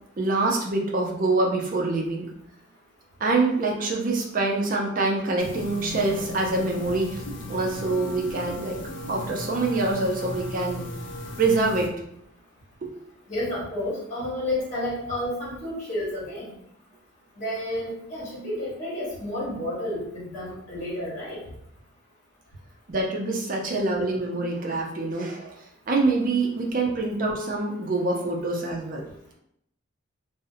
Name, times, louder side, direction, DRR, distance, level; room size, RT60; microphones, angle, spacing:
voice 1, 0.2-2.3 3.2-7.2 7.5-8.8 9.1-10.9 11.4-11.9 12.8-12.9 22.9-25.5 25.9-29.0, right 2 dB, 40° right, 0 dB, 0.4 m, -25 dB
sound 1, 5.4-11.9, left 1 dB, 60° left, 0.3 m, -37 dB
voice 2, 13.3-16.5 17.4-21.4, left 1 dB, 35° left, -7 dB, 1.1 m, -31 dB
2.6 x 2.0 x 2.6 m, 0.73 s
head